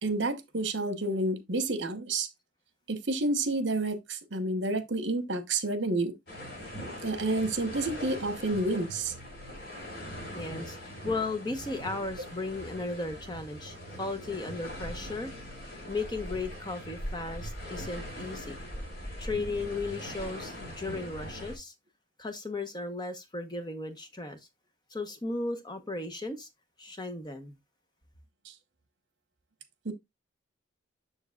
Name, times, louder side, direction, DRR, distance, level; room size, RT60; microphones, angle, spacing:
voice 1, 0.0-2.3 2.9-6.1 7.0-9.1 29.8-29.9, right 2 dB, 65° right, 1.1 m, -29 dB
sound 1, 6.3-21.6, equal, 55° left, 4.5 m, -41 dB
voice 2, 10.3-15.3 15.9-18.6 19.2-21.7 22.2-24.4 24.9-26.5 26.8-27.5, left 3 dB, 20° left, 0.9 m, -35 dB
7.1 x 6.9 x 2.4 m
head